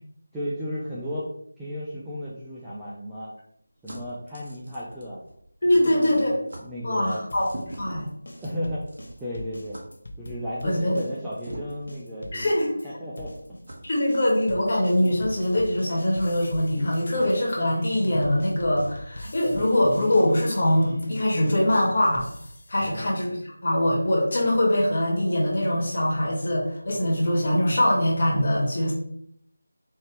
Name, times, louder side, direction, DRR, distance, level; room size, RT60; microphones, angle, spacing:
voice 1, 0.3-3.3 3.8-5.2 5.7-7.2 8.4-8.9 9.2-9.8 10.2-13.3 22.8-23.1, equal, 5° right, -10 dB, 0.5 m, -34 dB
sound 1, 2.3-5.8 6.0-6.2 6.5-6.7 7.4-9.3 9.7-9.9 11.4-11.9 12.6-12.7 13.7-13.9 14.9-15.4 16.4-16.5 16.7-17.4, right 1 dB, 40° right, 1.1 m, -43 dB
voice 2, 5.6-6.4 6.8-7.5 7.8-8.1 10.6-11.0 12.3-12.7 13.9-22.3 22.7-28.9, left 1 dB, 40° left, -3 dB, 1.5 m, -23 dB
sound 2, 7.3-12.9 13.2-22.9, left 1 dB, 55° left, 0.7 m, -41 dB
4.7 x 2.8 x 3.3 m, 0.69 s
figure-of-eight pair, 165°, 0 cm